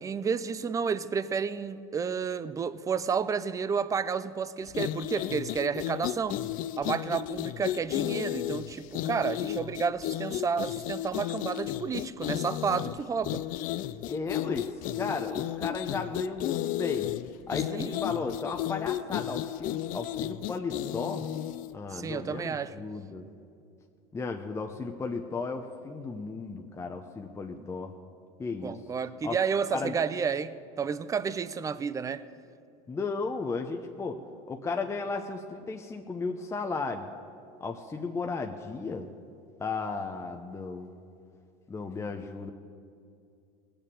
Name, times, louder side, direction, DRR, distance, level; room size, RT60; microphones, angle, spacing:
voice 1, 0.0-6.4 6.8-13.4 17.7-18.0 21.9-22.7 28.6-32.2, right 6 dB, 20° right, 15 dB, 0.5 m, -31 dB
sound 1, 4.7-21.7, left 13 dB, 50° left, 0.5 m, -33 dB
voice 2, 14.1-17.1 17.5-21.3 21.7-23.3 24.1-27.9 28.4-28.8 29.2-29.4 29.7-30.0 32.9-34.2 34.5-37.1 37.6-39.1 39.6-40.9 41.7-42.5, left 4 dB, 15° left, 3 dB, 0.7 m, -34 dB
18.5 x 6.8 x 8.8 m, 2.4 s
supercardioid pair, 110°, 18 cm